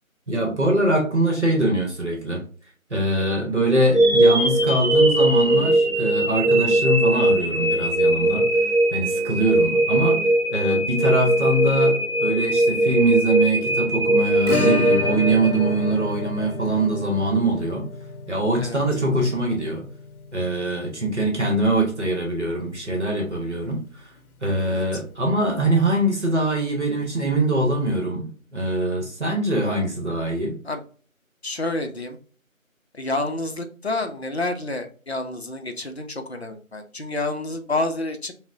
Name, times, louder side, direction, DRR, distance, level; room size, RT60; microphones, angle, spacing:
voice 1, 0.3-2.4 2.9-8.5 8.9-10.2 10.5-17.9 18.3-19.9 20.3-24.1 24.4-30.6, right 1 dB, 55° right, 0 dB, 0.9 m, -23 dB
sound 1, 3.9-16.0, right 1 dB, 5° left, 1.8 m, -20 dB
Acoustic guitar / Strum, 14.5-23.1 23.3-23.4 23.7-23.8 24.2-24.3 26.3-26.4 27.6-27.7, left 4 dB, 90° left, 0.7 m, -31 dB
voice 2, 24.7-25.0 30.6-30.8 31.4-32.2 32.9-38.3, left 2 dB, 50° left, 5 dB, 0.5 m, -29 dB
5.7 x 2.1 x 2.6 m, 0.42 s
figure-of-eight pair, 175°, 42 cm